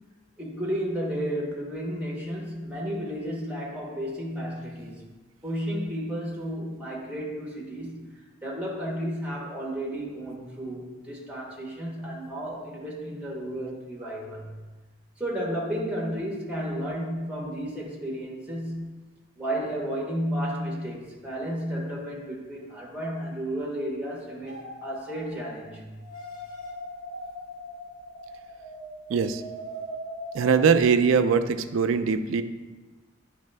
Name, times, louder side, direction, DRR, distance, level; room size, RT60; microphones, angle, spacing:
voice 1, 0.4-5.0 5.4-8.0 8.4-14.5 15.2-19.0 19.4-25.9, equal, 5° right, -3 dB, 1.1 m, -32 dB
sound 1, 24.5-25.6 25.9-30.8, equal, 25° left, 1.5 m, -40 dB
voice 2, 29.1-29.4 30.3-32.4, right 6 dB, 75° right, 10 dB, 0.3 m, -21 dB
9.0 x 3.3 x 3.3 m, 1.2 s
head